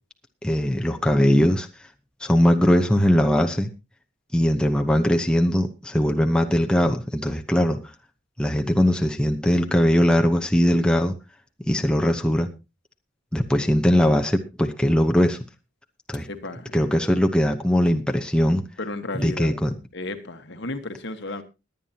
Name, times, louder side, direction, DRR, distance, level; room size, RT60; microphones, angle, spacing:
voice 1, 0.4-1.7 2.2-3.7 4.3-7.8 8.4-11.1 11.6-12.5 13.3-15.4 16.1-16.3 16.7-18.6 19.2-19.8, equal, 5° left, 0.8 m, -20 dB
voice 2, 16.3-17.0 18.8-19.5 19.9-21.4, left 2 dB, 60° left, 1.5 m, -33 dB
21.5 x 9.2 x 2.8 m
head